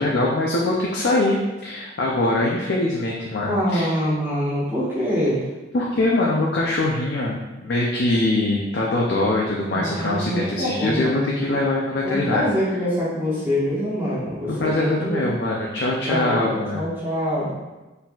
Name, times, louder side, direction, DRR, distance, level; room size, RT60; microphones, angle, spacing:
voice 1, 0.0-3.9 5.7-12.4 14.4-16.8, left 2 dB, 60° left, -3 dB, 0.5 m, -23 dB
voice 2, 3.4-5.4 9.7-11.4 12.0-15.2 16.0-17.5, equal, 10° right, -10 dB, 1.3 m, -25 dB
4.2 x 4.0 x 2.3 m, 1.1 s
head